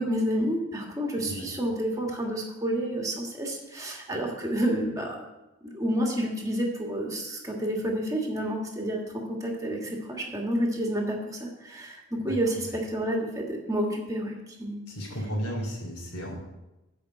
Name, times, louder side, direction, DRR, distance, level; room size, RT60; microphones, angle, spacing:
voice 1, 0.0-5.2 5.6-14.3 14.6-14.8, equal, 15° right, 0 dB, 1.6 m, -29 dB
voice 2, 14.9-16.4, equal, 85° left, -3 dB, 3.0 m, -33 dB
8.3 x 5.4 x 7.3 m, 1.0 s
head